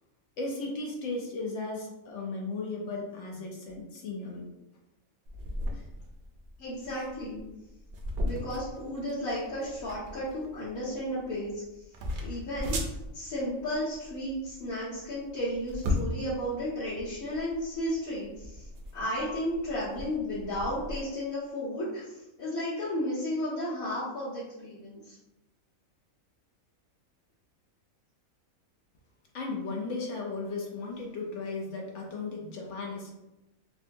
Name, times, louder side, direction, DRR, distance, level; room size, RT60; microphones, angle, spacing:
voice 1, 0.4-4.5 5.7-5.8 29.3-33.1, left 3 dB, 65° left, 0 dB, 0.9 m, -36 dB
sound 1, 5.3-21.0, left 1 dB, 65° right, 0.8 m, -37 dB
voice 2, 6.6-7.4 8.2-11.6 12.2-18.7 18.9-25.2, equal, 90° left, -11 dB, 1.4 m, -33 dB
3.7 x 2.3 x 2.5 m, 0.95 s
omnidirectional pair, 1.4 m